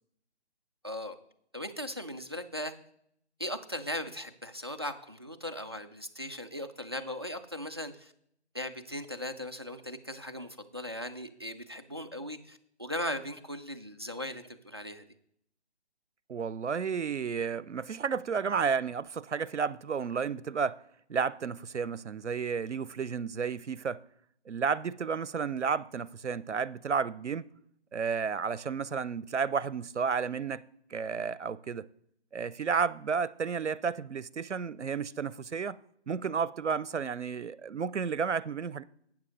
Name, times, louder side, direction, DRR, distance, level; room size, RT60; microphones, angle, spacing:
voice 1, 0.8-1.2 1.5-2.7 3.4-8.1 8.5-15.0, left 1 dB, 25° right, 0.4 m, -38 dB
voice 2, 16.3-20.8 21.1-24.0 24.5-27.5 27.9-30.6 30.9-31.9 32.3-35.8 36.1-38.8, right 6 dB, 85° right, 0.6 m, -32 dB
12.0 x 9.0 x 3.8 m
figure-of-eight pair, 145°, 34 cm